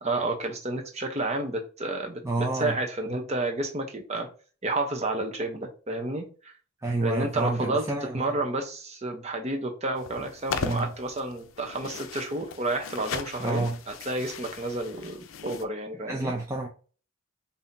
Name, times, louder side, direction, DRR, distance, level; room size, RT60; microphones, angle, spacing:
voice 1, 0.0-4.3 4.6-6.5 7.0-7.8 8.1-16.3, right 2 dB, 30° right, 3 dB, 0.9 m, -31 dB
voice 2, 2.2-2.8 6.8-8.3 10.6-10.9 13.4-13.8 16.1-16.7, right 2 dB, 15° right, -1 dB, 0.5 m, -29 dB
sound 1, 10.0-15.6, left 5 dB, 70° left, 0.5 m, -38 dB
5.5 x 2.8 x 2.7 m, 0.37 s
head